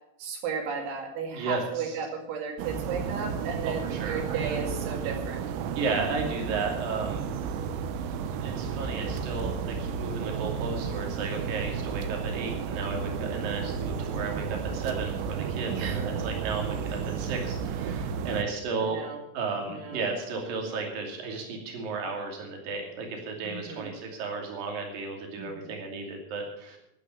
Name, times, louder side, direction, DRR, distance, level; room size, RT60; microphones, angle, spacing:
voice 1, 0.2-5.4 15.7-16.0 18.8-19.2 19.6-20.1 23.4-23.9 25.4-25.8, right 5 dB, 70° right, 3 dB, 4.3 m, -34 dB
voice 2, 1.3-2.0 3.6-4.6 5.8-7.2 8.4-19.0 19.3-26.8, right 4 dB, 50° right, 2 dB, 3.9 m, -34 dB
sound 1, 2.6-18.4, right 6 dB, 85° right, 3.5 m, -32 dB
11.5 x 10.5 x 7.5 m, 0.81 s
omnidirectional pair, 6.0 m